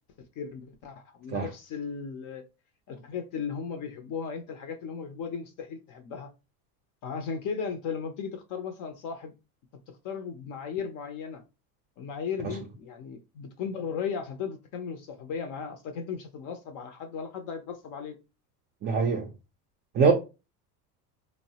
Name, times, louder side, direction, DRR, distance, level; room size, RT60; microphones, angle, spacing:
voice 1, 0.4-2.4 2.9-6.3 7.0-9.3 9.9-11.4 12.0-18.2, left 6 dB, 45° left, 0.5 m, -36 dB
voice 2, 18.8-19.3 19.9-20.1, right 5 dB, 25° right, 0.3 m, -23 dB
3.1 x 2.0 x 2.7 m
supercardioid pair, 105°, 45 cm